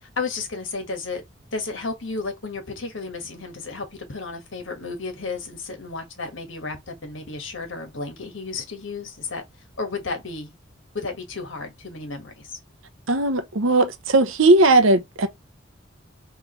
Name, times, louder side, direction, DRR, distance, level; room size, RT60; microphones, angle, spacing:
voice 1, 0.0-1.2 1.5-9.4 9.8-10.5 10.9-12.6, left 4 dB, 75° left, 1.6 m, -33 dB
voice 2, 13.1-15.3, right 2 dB, 80° right, 0.9 m, -18 dB
4.9 x 3.3 x 3.2 m
head